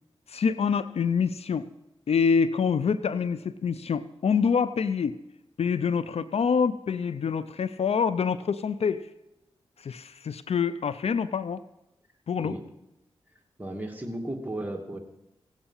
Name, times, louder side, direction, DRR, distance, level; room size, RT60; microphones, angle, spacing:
voice 1, 0.3-1.7 2.1-5.2 5.6-9.1 9.8-11.6 12.3-12.6, left 6 dB, 70° left, 15 dB, 0.5 m, -26 dB
voice 2, 13.6-15.0, right 1 dB, 15° right, 2 dB, 2.2 m, -34 dB
17.0 x 8.9 x 5.6 m, 0.92 s
cardioid pair, 45°, 11 cm